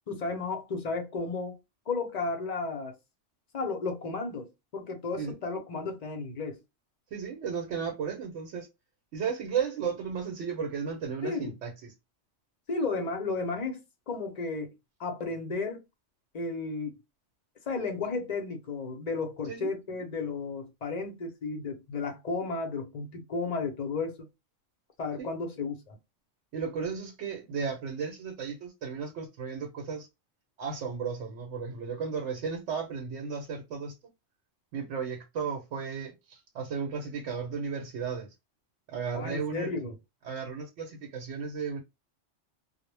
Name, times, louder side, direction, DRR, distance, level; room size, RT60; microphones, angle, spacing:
voice 1, 0.1-1.6 1.9-2.9 3.5-6.6 11.2-11.5 12.7-13.8 14.1-14.7 15.0-15.8 16.3-16.9 17.7-24.3 25.0-26.0 39.1-39.9, left 3 dB, 45° left, 0.6 m, -33 dB
voice 2, 7.1-8.7 9.1-11.9 19.5-19.7 25.2-25.3 26.5-30.1 30.6-33.9 34.7-38.3 38.9-39.7 40.2-41.8, right 6 dB, 90° right, 1.0 m, -34 dB
2.1 x 2.0 x 3.1 m
omnidirectional pair, 1.2 m